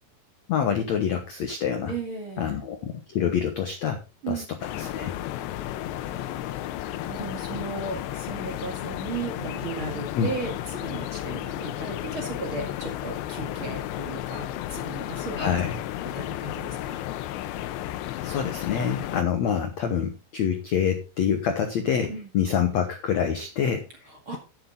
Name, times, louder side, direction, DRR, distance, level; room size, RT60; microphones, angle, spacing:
voice 1, 0.5-1.9 2.4-4.4 4.8-5.1 10.1-10.3 15.3-15.8 18.2-23.8, left 8 dB, 70° left, 5 dB, 1.6 m, -26 dB
voice 2, 1.9-2.6 4.2-4.5 6.0-6.6 6.9-15.5 16.1-17.0 22.1-22.3 24.1-24.4, right 4 dB, 40° right, 2 dB, 2.1 m, -36 dB
sound 1, 4.6-19.2, left 13 dB, 85° left, 3.0 m, -33 dB
11.0 x 9.4 x 3.9 m, 0.30 s
omnidirectional pair, 4.9 m